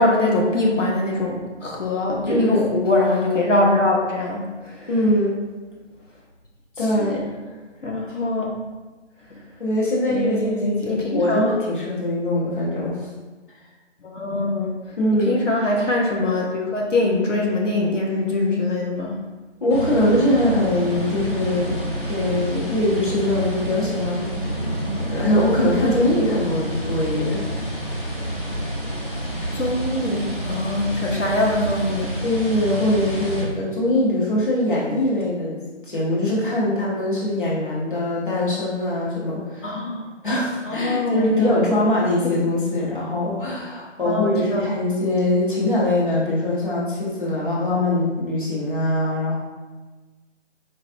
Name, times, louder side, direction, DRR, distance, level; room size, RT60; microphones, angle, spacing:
voice 1, 0.0-4.9 7.0-7.2 7.8-8.5 10.1-11.6 14.1-14.7 15.1-19.2 29.5-32.2 39.6-40.1 40.6-41.5 44.0-44.6, left 2 dB, 85° left, -2 dB, 0.8 m, -23 dB
voice 2, 2.3-2.6 4.9-5.4 6.8-7.2 9.6-13.1 15.0-15.4 19.6-21.7 22.1-24.3 25.1-27.5 32.2-35.6 35.9-39.8 40.2-49.4, left 1 dB, 45° left, -7 dB, 1.0 m, -22 dB
sound 1, 19.7-33.4, right 1 dB, 25° left, 0.7 m, -28 dB
4.4 x 2.5 x 2.5 m, 1.3 s
figure-of-eight pair, 160°, 36 cm